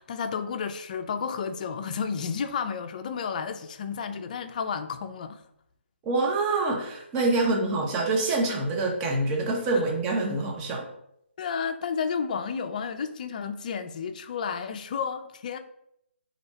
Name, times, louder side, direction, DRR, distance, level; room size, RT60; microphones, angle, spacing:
voice 1, 0.0-5.4 11.4-15.6, left 6 dB, 40° left, 0.4 m, -32 dB
voice 2, 6.0-10.8, right 2 dB, 15° right, 0.6 m, -26 dB
4.2 x 2.8 x 3.9 m
hypercardioid pair, 155°, 7 cm